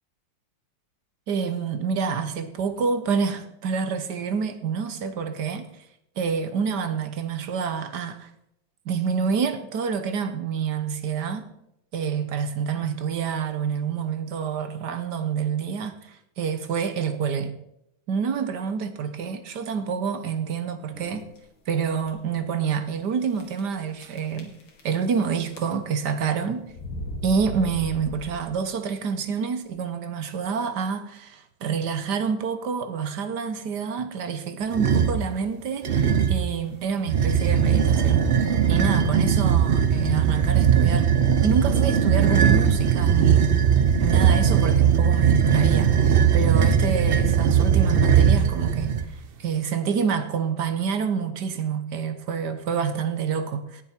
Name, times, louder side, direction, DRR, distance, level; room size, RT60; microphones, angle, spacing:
voice 1, 1.3-5.7 6.2-8.3 8.8-11.5 11.9-17.5 18.1-21.3 21.7-24.5 24.8-26.7 27.2-38.3 38.7-41.1 41.4-43.6 44.0-45.9 46.3-53.8, right 6 dB, 65° right, 1.4 m, -27 dB
sound 1, 20.9-21.4 22.0-22.1 22.4-22.5 23.4-23.8 24.0-25.2 25.5-26.0 26.7-28.6, equal, 85° left, 2.7 m, -37 dB
sound 2, 34.7-35.2 35.8-36.5 37.1-49.1, right 7 dB, 85° right, 0.5 m, -19 dB
18.5 x 7.1 x 4.4 m
omnidirectional pair, 2.1 m